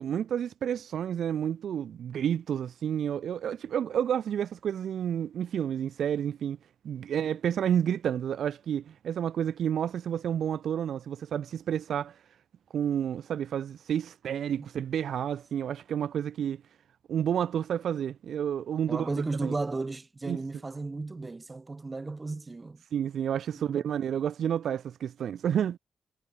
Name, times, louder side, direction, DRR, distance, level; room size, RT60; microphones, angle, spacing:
voice 1, 0.0-6.6 6.8-12.2 12.7-16.6 17.1-19.1 19.4-19.5 20.3-20.4 22.9-25.8, right 9 dB, 80° right, 2.2 m, -30 dB
voice 2, 18.9-22.8 23.5-23.7, right 3 dB, 25° right, 7.1 m, -34 dB
cardioid pair, 110°, 0 cm